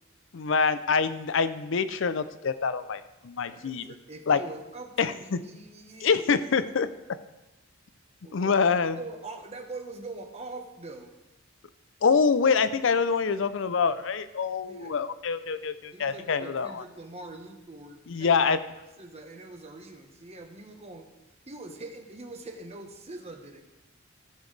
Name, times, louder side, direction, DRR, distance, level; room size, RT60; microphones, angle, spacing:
voice 1, 0.3-3.8 4.3-4.4 5.0-5.4 6.0-6.9 8.3-9.0 12.0-16.8 18.1-18.6, left 5 dB, 65° left, 13 dB, 0.5 m, -25 dB
voice 2, 3.5-6.2 8.2-11.1 14.6-15.0 15.9-18.4 18.8-21.1 21.5-23.6, right 2 dB, 30° right, 4 dB, 1.1 m, -43 dB
15.5 x 7.1 x 3.3 m, 1.0 s
head